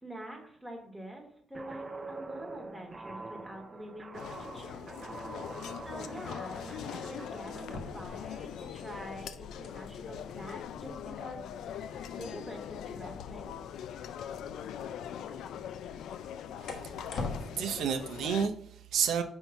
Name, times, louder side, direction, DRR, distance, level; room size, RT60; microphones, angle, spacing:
voice 1, 0.0-5.0 5.8-11.4 12.1-13.5, right 1 dB, ahead, 0 dB, 1.2 m, -46 dB
Guitar, 1.5-8.1, right 3 dB, 20° right, 0.5 m, -45 dB
sound 1, 4.1-18.5, left 9 dB, 80° left, 0.4 m, -42 dB
sound 2, 7.3-17.4, left 3 dB, 65° left, 1.2 m, -46 dB
voice 2, 16.6-17.3 17.5-19.2, right 7 dB, 85° right, 4 dB, 0.7 m, -31 dB
5.5 x 4.5 x 5.7 m, 0.65 s
cardioid pair, 165°, 0 cm